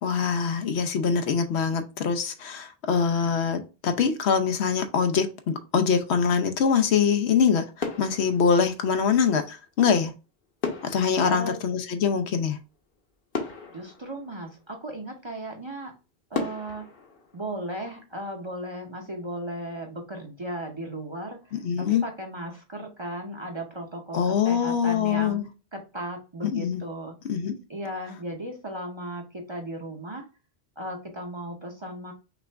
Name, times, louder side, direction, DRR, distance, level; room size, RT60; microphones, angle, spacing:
voice 1, 0.0-10.1 10.8-12.6 21.5-22.0 24.1-25.4 26.4-26.8 27.3-27.6, left 6 dB, 75° left, 1.0 m, -24 dB
sound 1, 7.8-9.3 10.6-12.5 12.9-13.0 13.3-14.9 15.5-15.6 16.3-18.2 18.5-18.8, left 4 dB, 55° left, 1.1 m, -36 dB
voice 2, 11.2-11.6 13.7-15.9 16.3-16.9 17.3-25.4 25.7-27.2 27.7-30.3 30.8-32.1, right 1 dB, 30° right, 0.7 m, -36 dB
5.9 x 2.4 x 3.3 m
omnidirectional pair, 1.1 m